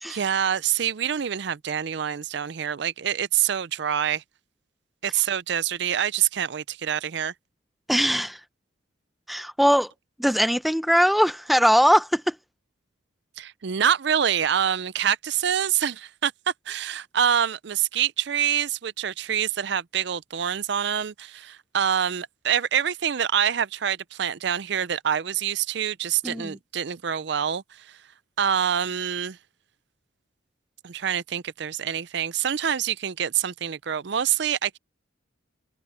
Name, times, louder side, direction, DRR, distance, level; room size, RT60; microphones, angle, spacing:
voice 1, 0.1-4.2 5.0-7.3 13.4-16.3 16.7-27.6 28.4-29.4 30.8-34.8, right 9 dB, 60° right, 0.5 m, -26 dB
voice 2, 7.9-8.4 9.3-9.9 10.2-12.3 26.2-26.6, equal, ahead, 0.6 m, -21 dB
head